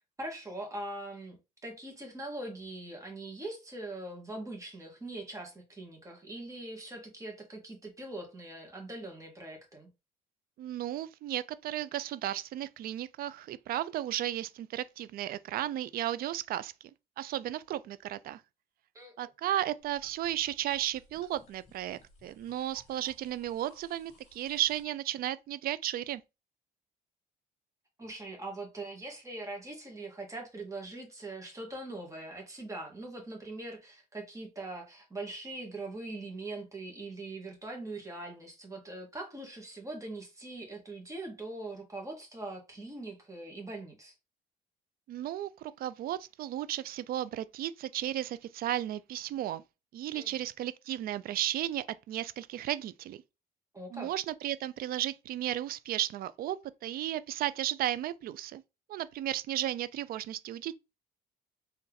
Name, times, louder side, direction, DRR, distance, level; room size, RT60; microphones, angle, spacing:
voice 1, 0.0-1.4 1.6-9.9 18.9-19.3 28.0-44.1 50.1-50.4 53.7-54.1, right 2 dB, 20° right, 1.9 m, -42 dB
voice 2, 10.6-16.7 17.2-18.4 19.2-26.2 45.1-49.6 49.9-53.2 53.9-58.6 58.9-60.7, right 12 dB, 60° right, 0.4 m, -34 dB
sound 1, 19.8-24.8, left 2 dB, 40° left, 2.4 m, -61 dB
4.1 x 3.3 x 3.9 m
cardioid pair, 110°, 17 cm